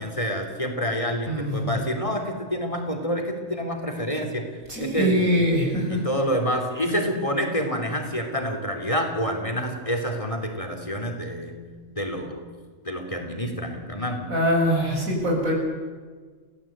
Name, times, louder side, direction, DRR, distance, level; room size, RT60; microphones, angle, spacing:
voice 1, 0.0-4.4 4.8-5.4 5.9-11.6 12.0-12.5 12.8-14.3, equal, 25° left, 4 dB, 3.3 m, -27 dB
voice 2, 1.3-1.8 4.7-6.0 14.3-15.5, equal, 85° right, -1 dB, 7.9 m, -23 dB
29.5 x 17.5 x 8.8 m, 1.5 s
omnidirectional pair, 1.4 m